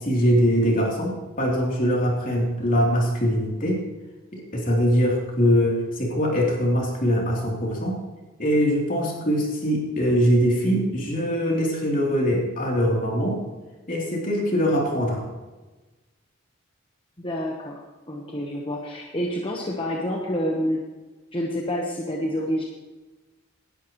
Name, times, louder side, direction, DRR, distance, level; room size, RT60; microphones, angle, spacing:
voice 1, 0.0-3.8 4.5-8.0 8.4-13.4 13.9-15.2, equal, 40° left, -2 dB, 3.3 m, -22 dB
voice 2, 17.2-17.8 18.1-20.8 21.3-22.6, equal, 25° left, -1 dB, 1.2 m, -28 dB
17.5 x 11.5 x 3.1 m, 1.2 s
head